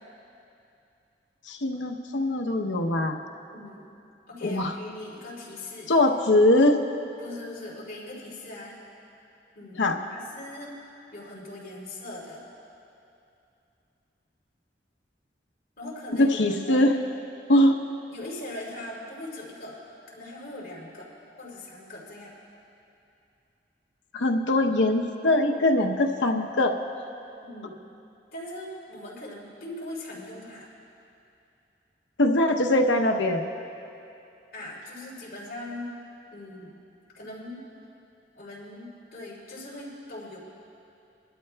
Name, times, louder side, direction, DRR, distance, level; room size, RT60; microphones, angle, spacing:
voice 1, 1.5-3.2 4.4-4.7 5.9-6.8 9.8-10.0 16.2-16.9 17.5-17.8 24.1-26.7 32.2-33.5, left 1 dB, 90° left, 2 dB, 0.9 m, -22 dB
voice 2, 3.5-3.9 4.3-5.9 7.2-8.8 9.5-12.4 15.8-16.4 16.6-17.0 18.1-21.1 21.4-22.3 27.4-27.8 28.3-30.7 34.5-36.0 36.3-36.7 37.1-37.7 38.3-40.4, left 1 dB, 55° left, -5 dB, 3.1 m, -40 dB
22.5 x 12.0 x 2.3 m, 2.7 s
head